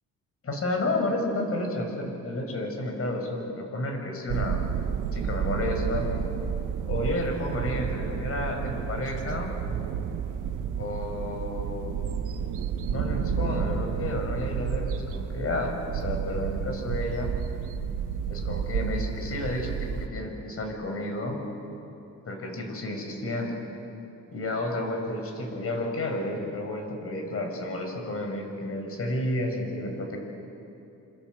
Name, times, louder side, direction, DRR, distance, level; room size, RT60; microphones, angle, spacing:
voice 1, 0.4-4.7 5.1-6.1 6.8-9.5 10.8-11.9 12.9-17.3 18.3-21.4 22.2-23.6 24.3-30.2, left 1 dB, 50° left, 3 dB, 6.4 m, -31 dB
sound 1, 4.3-20.1, right 7 dB, 90° right, 1.5 m, -31 dB
28.5 x 25.5 x 8.0 m, 2.8 s
cardioid pair, 90°, 30 cm